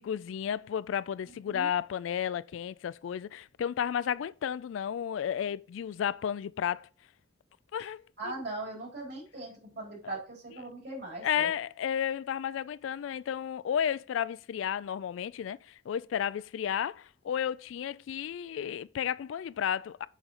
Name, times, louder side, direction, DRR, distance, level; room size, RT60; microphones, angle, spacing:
voice 1, 0.0-6.9 7.7-8.3 10.0-10.1 11.2-20.1, left 9 dB, 85° left, 0.3 m, -32 dB
voice 2, 1.3-1.7 8.2-11.5, right 2 dB, 60° right, 3.2 m, -40 dB
7.2 x 5.1 x 4.1 m
head